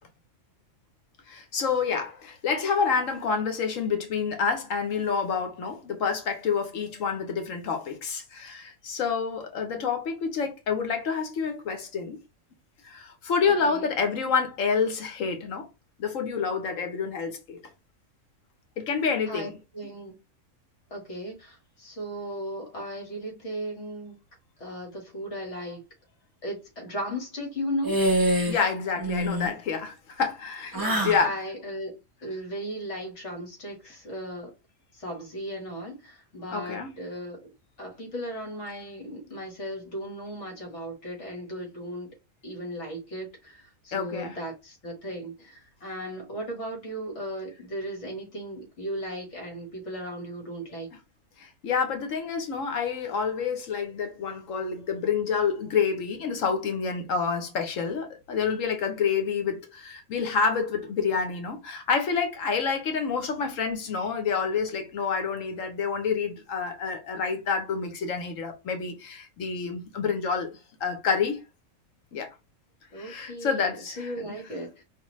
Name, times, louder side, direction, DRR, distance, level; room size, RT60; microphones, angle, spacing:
voice 1, 1.3-12.2 12.8-15.7 16.0-17.6 18.8-19.5 28.5-31.4 36.5-37.0 43.9-44.4 51.4-71.4 72.1-72.3 73.0-74.4, left 5 dB, 85° left, 1.3 m, -28 dB
voice 2, 13.6-13.9 19.3-20.2 20.9-24.2 24.6-25.8 26.4-28.0 30.7-34.5 34.9-37.5 37.8-42.1 42.4-50.9 72.9-74.8, equal, 65° left, 1.9 m, -36 dB
sound 1, 27.8-28.7 29.0-29.5 30.7-31.2, right 1 dB, 20° right, 0.8 m, -25 dB
5.1 x 2.6 x 3.1 m
omnidirectional pair, 1.3 m